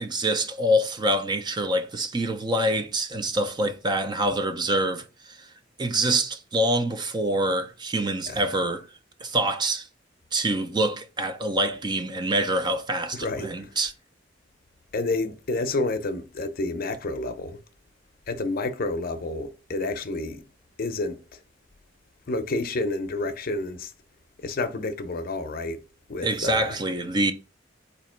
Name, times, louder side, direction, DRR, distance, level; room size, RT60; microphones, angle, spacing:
voice 1, 0.0-5.5 5.8-8.9 9.2-9.9 10.3-13.9 26.2-27.3, right 1 dB, 25° right, 0.4 m, -25 dB
voice 2, 13.1-13.7 14.9-17.6 18.3-20.4 20.8-21.4 22.3-23.9 24.4-25.8 26.1-26.8, left 2 dB, 50° left, 0.6 m, -29 dB
4.3 x 2.8 x 4.3 m
head